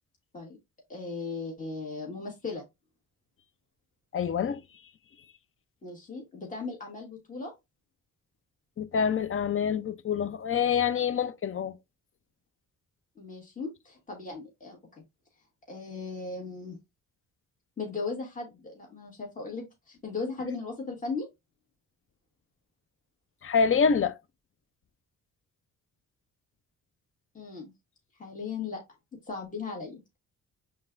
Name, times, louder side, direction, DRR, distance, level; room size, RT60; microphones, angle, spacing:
voice 1, 0.9-2.6 5.8-7.5 13.2-15.0 15.7-16.8 17.8-21.3 27.3-27.7 28.2-28.8 29.1-30.2, left 4 dB, 25° left, 1.5 m, -37 dB
voice 2, 4.1-4.6 8.8-11.7 23.4-24.2, left 6 dB, 40° left, 0.5 m, -26 dB
5.3 x 3.4 x 2.5 m
cardioid pair, 75°, 32 cm